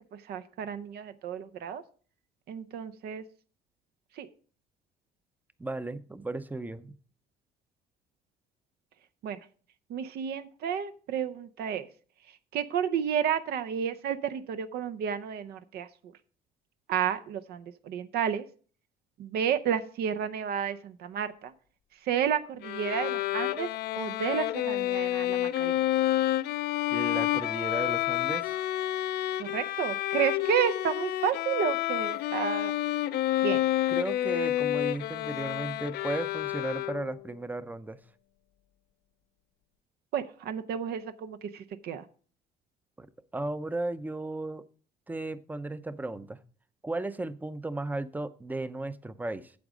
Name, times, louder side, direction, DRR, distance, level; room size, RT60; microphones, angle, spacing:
voice 1, 0.1-1.8 2.5-3.2 4.1-4.3 9.2-9.4 9.9-11.9 12.3-16.1 16.9-18.5 19.2-21.5 21.9-25.9 29.4-32.7 33.4-33.7 40.1-42.1, right 8 dB, 70° right, 10 dB, 0.7 m, -31 dB
voice 2, 5.6-6.9 26.9-28.6 33.9-38.0 43.0-43.1 43.3-44.6 45.1-46.4 46.8-49.5, right 2 dB, 10° right, 14 dB, 0.6 m, -35 dB
Bowed string instrument, 22.6-37.3, left 14 dB, 70° left, 0.5 m, -29 dB
8.6 x 7.2 x 5.0 m, 0.42 s
cardioid pair, 110°, 17 cm